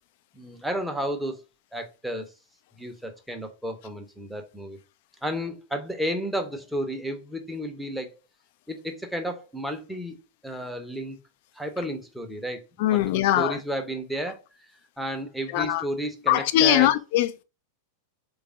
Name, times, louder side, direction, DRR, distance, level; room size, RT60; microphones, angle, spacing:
voice 1, 0.3-1.4 1.7-2.3 2.8-4.8 5.2-8.1 8.7-10.2 10.4-11.2 11.5-14.4 15.0-16.9, right 1 dB, ahead, 0.7 m, -32 dB
voice 2, 12.8-13.6 15.5-15.8 16.3-17.4, left 13 dB, 50° left, 0.3 m, -21 dB
3.2 x 2.4 x 3.8 m
figure-of-eight pair, 90°, 0 cm